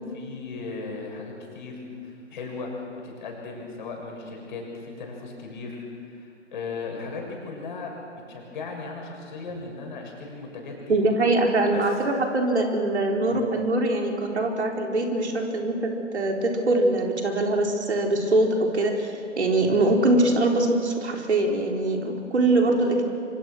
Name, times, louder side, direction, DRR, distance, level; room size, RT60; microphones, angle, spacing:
voice 1, 0.1-8.0 8.3-11.0 11.7-11.8 13.3-13.4 19.6-19.8, left 4 dB, 40° left, 0 dB, 6.7 m, -37 dB
voice 2, 10.9-23.0, right 2 dB, 65° right, 1 dB, 4.2 m, -23 dB
27.0 x 25.5 x 6.3 m, 2.4 s
figure-of-eight pair, 140°, 37 cm